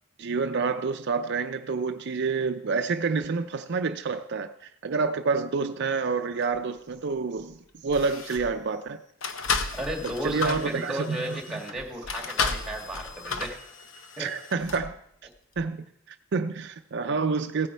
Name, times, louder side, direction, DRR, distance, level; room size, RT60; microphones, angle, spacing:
voice 1, 0.2-9.0 10.2-11.6 14.2-15.0 15.6-17.7, right 4 dB, 55° right, 7 dB, 0.5 m, -28 dB
sound 1, 6.4-6.6 7.4-7.5 7.9-8.6 9.2-14.9 15.6-15.7, left 4 dB, 70° left, 0.9 m, -33 dB
voice 2, 9.7-13.6 14.2-14.3, right 1 dB, 5° right, 2 dB, 2.0 m, -34 dB
16.0 x 9.5 x 4.5 m, 0.73 s
head